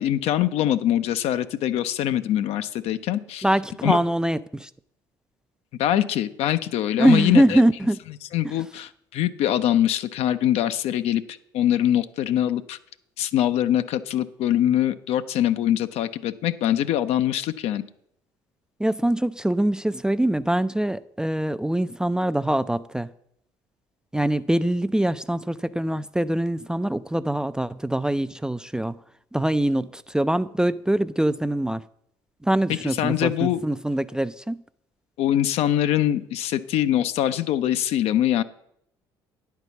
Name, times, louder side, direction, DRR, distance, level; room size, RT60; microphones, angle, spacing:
voice 1, 0.0-3.4 3.8-4.0 5.8-7.6 8.3-11.2 11.5-12.8 13.2-17.8 32.7-33.6 35.2-38.4, left 12 dB, 60° left, 0.5 m, -23 dB
voice 2, 3.4-4.7 7.0-8.0 18.8-23.1 24.1-29.0 29.3-31.8 32.4-34.6, right 1 dB, 5° right, 0.3 m, -23 dB
9.7 x 4.6 x 6.9 m
hypercardioid pair, 55°, 12 cm